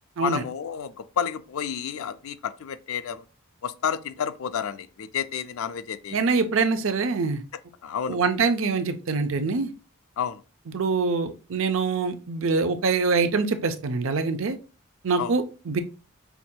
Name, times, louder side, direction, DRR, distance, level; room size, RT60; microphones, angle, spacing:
voice 1, 0.2-3.2 3.6-6.2 7.8-8.2 10.2-10.4 15.2-15.3, left 8 dB, 75° left, 0.4 m, -30 dB
voice 2, 6.1-7.4 8.1-9.7 10.7-14.6 15.0-15.8, right 4 dB, 65° right, 0.5 m, -24 dB
5.7 x 2.7 x 2.2 m
head